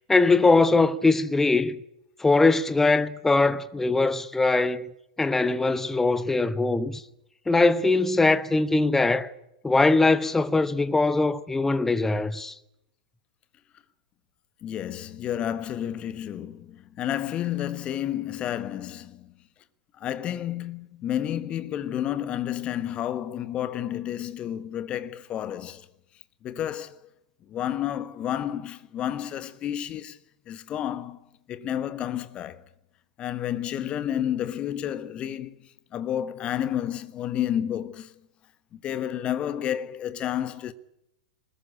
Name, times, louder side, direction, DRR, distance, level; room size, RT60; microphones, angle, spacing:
voice 1, 0.0-1.8 2.2-4.8 5.2-7.0 7.5-9.3 9.6-12.5, left 3 dB, 10° left, 1.0 m, -21 dB
voice 2, 14.6-19.5 20.0-25.9 26.4-27.0 27.5-30.2 30.5-31.2 31.5-32.6 33.2-38.1 38.7-40.7, left 10 dB, 25° left, 1.3 m, -31 dB
24.0 x 20.5 x 8.8 m
figure-of-eight pair, 100°, 4 cm